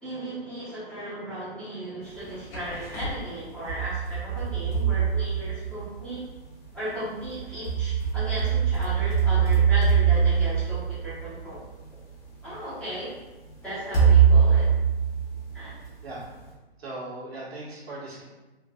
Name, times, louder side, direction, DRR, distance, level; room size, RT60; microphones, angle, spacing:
voice 1, 0.0-6.2 6.7-11.6 12.4-13.1 13.6-14.7 15.5-15.7, right 1 dB, 5° left, -13 dB, 1.0 m, -36 dB
sound 1, 2.2-3.1 3.7-6.1 7.2-11.6 12.5-12.6 13.9-15.8, right 7 dB, 35° left, 1.1 m, -23 dB
voice 2, 16.8-18.2, right 2 dB, 70° right, -5 dB, 1.3 m, -38 dB
3.3 x 2.5 x 2.4 m, 1.1 s
hypercardioid pair, 135°, 31 cm